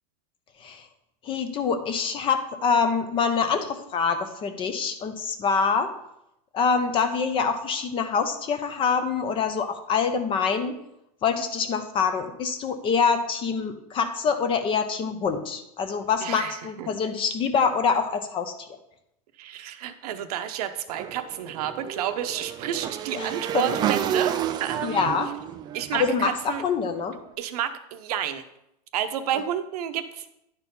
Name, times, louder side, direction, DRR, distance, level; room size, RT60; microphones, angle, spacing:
voice 1, 1.2-5.9 6.5-10.7 11.2-18.8 23.2-23.6 24.8-25.3 25.9-27.1, left 5 dB, 25° left, 8 dB, 0.8 m, -25 dB
voice 2, 16.2-16.9 19.4-25.1 25.7-26.6 27.4-28.4 28.9-30.3, right 10 dB, 75° right, 9 dB, 0.9 m, -30 dB
Motorcycle / Engine, 20.9-27.0, right 10 dB, 20° right, 0.3 m, -31 dB
10.0 x 4.5 x 5.3 m, 0.82 s
supercardioid pair, 150°, 20 cm